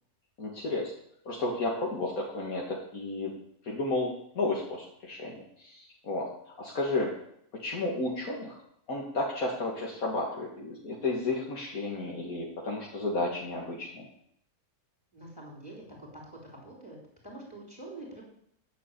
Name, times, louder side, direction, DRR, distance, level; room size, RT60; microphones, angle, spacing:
voice 1, 0.4-0.9 1.3-3.3 3.6-7.1 7.5-8.6 8.9-14.1, left 2 dB, 75° left, -3 dB, 2.3 m, -32 dB
voice 2, 15.1-17.0 17.2-18.2, right 2 dB, 15° left, -2 dB, 3.8 m, -46 dB
10.0 x 6.8 x 8.3 m, 0.71 s
omnidirectional pair, 1.5 m